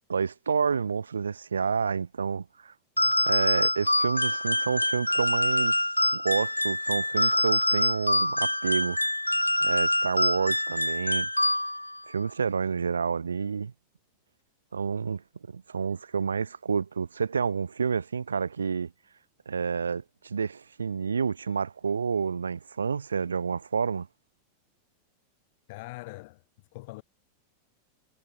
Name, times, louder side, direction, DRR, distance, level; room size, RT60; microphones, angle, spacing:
voice 1, 0.1-2.7 3.2-5.8 6.1-9.0 9.6-11.3 12.1-13.7 14.7-15.2 15.5-18.9 19.5-24.1, right 6 dB, 75° right, 1.4 m, -29 dB
sound 1, 3.0-12.0, left 1 dB, 85° left, 0.7 m, -25 dB
voice 2, 25.7-26.4 26.7-27.0, left 23 dB, 50° left, 7.6 m, -42 dB
figure-of-eight pair, 90°, 0 cm